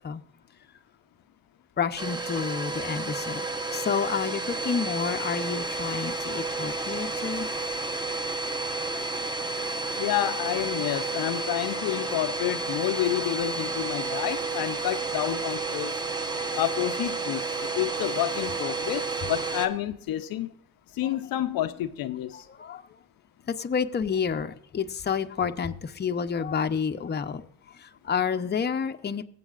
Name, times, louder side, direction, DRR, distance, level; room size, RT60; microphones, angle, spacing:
voice 1, 1.8-7.5 16.3-16.6 18.6-18.7 22.3-22.9 23.5-29.2, left 6 dB, 25° left, 0.7 m, -30 dB
Domestic sounds home sounds, 2.0-19.7, right 3 dB, 10° right, 1.0 m, -31 dB
voice 2, 10.0-16.0 16.5-20.5 20.9-22.5, left 13 dB, 65° left, 0.6 m, -29 dB
23.0 x 7.8 x 2.5 m
cardioid pair, 95°, 38 cm